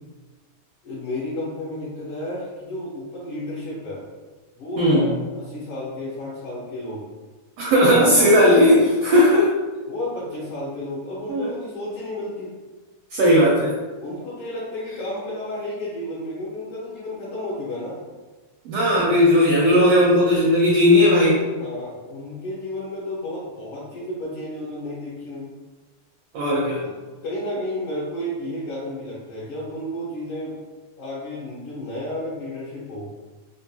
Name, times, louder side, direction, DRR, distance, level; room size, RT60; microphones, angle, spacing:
voice 1, 0.8-4.0 4.6-7.0 8.1-9.2 9.9-12.5 14.0-18.0 18.9-19.1 21.5-25.5 26.8-26.9 27.2-30.6 31.0-33.1, left 1 dB, 65° left, -8 dB, 1.6 m, -32 dB
voice 2, 4.8-5.1 7.6-9.5 11.3-11.5 13.1-13.8 18.6-21.4 26.3-26.8, left 1 dB, 75° right, -4 dB, 1.4 m, -16 dB
4.5 x 2.5 x 2.7 m, 1.3 s
omnidirectional pair, 3.4 m